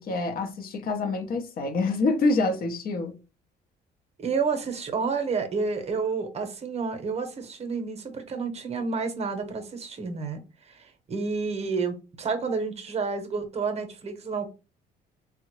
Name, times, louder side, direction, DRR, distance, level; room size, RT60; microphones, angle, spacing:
voice 1, 0.0-3.2, left 3 dB, 55° left, 0.7 m, -26 dB
voice 2, 4.2-14.5, right 5 dB, 35° right, 0.8 m, -30 dB
3.6 x 2.1 x 3.0 m
cardioid pair, 110°, 18 cm